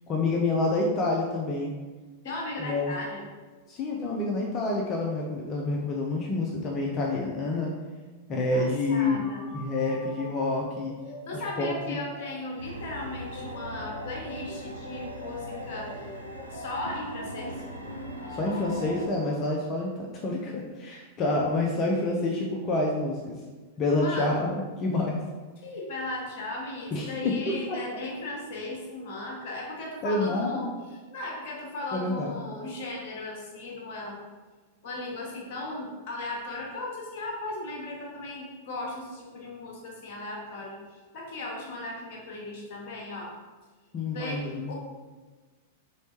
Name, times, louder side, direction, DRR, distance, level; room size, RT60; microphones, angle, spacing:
voice 1, 0.1-1.7 2.6-2.9 3.7-7.7 8.3-9.2 9.5-10.9 11.3-12.0 18.3-23.4 23.8-25.2 26.9-27.8 30.0-30.7 31.9-32.3 43.9-44.7, left 2 dB, 30° left, -1 dB, 0.5 m, -28 dB
voice 2, 2.2-3.3 8.5-9.5 11.2-16.1 16.5-17.6 24.0-24.3 25.6-34.2 34.8-43.3 44.1-44.7, left 2 dB, 45° left, -2 dB, 1.1 m, -37 dB
sound 1, 9.2-19.9, left 1 dB, 75° left, 0.8 m, -43 dB
sound 2, 12.6-19.1, equal, 90° right, 0.4 m, -41 dB
4.2 x 3.2 x 3.0 m, 1.3 s
figure-of-eight pair, 95°, 0 cm